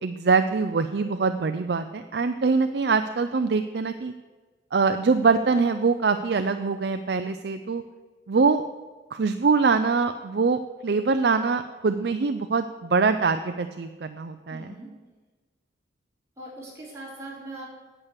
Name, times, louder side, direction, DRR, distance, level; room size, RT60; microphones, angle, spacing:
voice 1, 0.0-4.1 4.7-7.8 8.3-8.6 9.1-14.7, right 4 dB, 60° right, 8 dB, 0.5 m, -23 dB
voice 2, 14.5-14.9 16.4-17.6, right 2 dB, 15° right, -6 dB, 4.1 m, -40 dB
8.8 x 8.2 x 8.2 m, 1.3 s
head